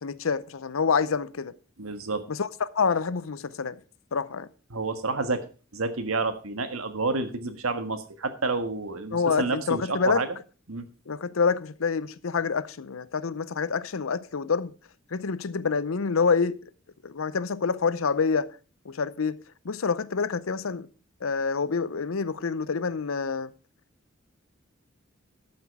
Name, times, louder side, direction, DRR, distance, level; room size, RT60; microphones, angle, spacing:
voice 1, 0.0-1.5 2.3-3.8 4.1-4.5 9.1-10.3 11.1-14.7 15.1-16.6 17.0-18.5 18.9-19.4 19.6-20.9 21.2-23.5, left 5 dB, 70° left, 0.6 m, -27 dB
voice 2, 1.8-2.2 4.7-5.4 5.7-10.3 10.7-10.9, right 3 dB, 80° right, 1.5 m, -29 dB
13.0 x 7.4 x 4.8 m
head